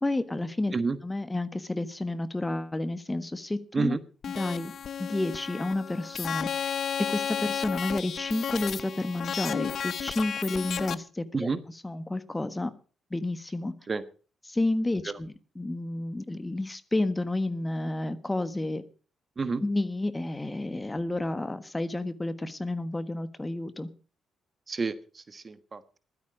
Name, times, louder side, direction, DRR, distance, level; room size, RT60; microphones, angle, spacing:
voice 1, 0.0-0.7 1.0-4.0 4.3-4.7 5.0-6.8 7.1-11.5 11.8-12.7 13.1-13.7 14.5-18.8 19.6-23.9, left 2 dB, 20° left, 12 dB, 1.4 m, -30 dB
sound 1, 4.2-10.9, left 8 dB, 55° left, 0.7 m, -33 dB
voice 2, 24.7-26.0, right 4 dB, 40° right, 13 dB, 1.4 m, -30 dB
16.0 x 12.5 x 5.1 m, 0.37 s
hypercardioid pair, 45°, 0 cm